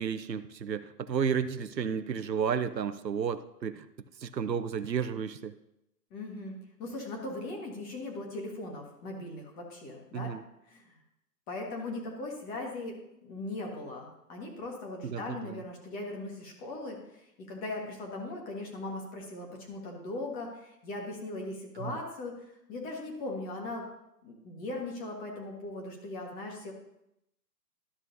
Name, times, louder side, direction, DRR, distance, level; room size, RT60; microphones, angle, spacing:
voice 1, 0.0-3.9 4.2-5.5 10.1-10.4 15.0-15.6 21.8-22.0, right 7 dB, 90° right, 12 dB, 0.7 m, -32 dB
voice 2, 6.1-10.3 10.7-11.0 11.5-22.4 22.7-23.9 24.2-26.7, left 2 dB, 20° left, 0 dB, 1.5 m, -39 dB
12.5 x 6.3 x 2.7 m, 0.83 s
figure-of-eight pair, 135°, 49 cm